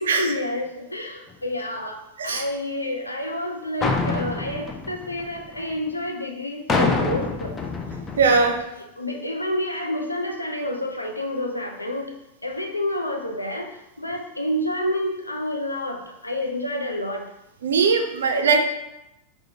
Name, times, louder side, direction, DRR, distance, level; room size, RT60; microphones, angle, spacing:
voice 1, 0.0-2.0 2.2-7.5 8.8-12.1 12.4-13.7 14.0-17.2 18.1-18.2, left 1 dB, 85° left, 2 dB, 0.4 m, -29 dB
sound 1, 3.8-5.8 6.7-8.6, left 3 dB, 20° left, 0.4 m, -26 dB
voice 2, 8.2-8.5 17.6-18.6, right 4 dB, 65° right, 5 dB, 0.4 m, -19 dB
3.5 x 2.1 x 2.7 m, 0.90 s
figure-of-eight pair, 90°, 0 cm